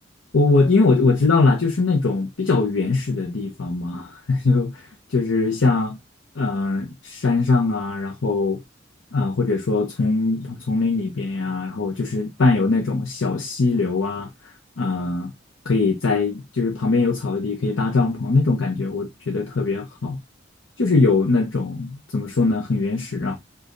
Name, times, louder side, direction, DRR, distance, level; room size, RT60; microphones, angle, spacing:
voice 1, 0.3-6.0 6.4-8.6 9.1-14.3 14.8-15.3 15.6-20.2 20.8-23.4, left 3 dB, 85° left, 0.8 m, -21 dB
5.1 x 2.5 x 3.8 m
head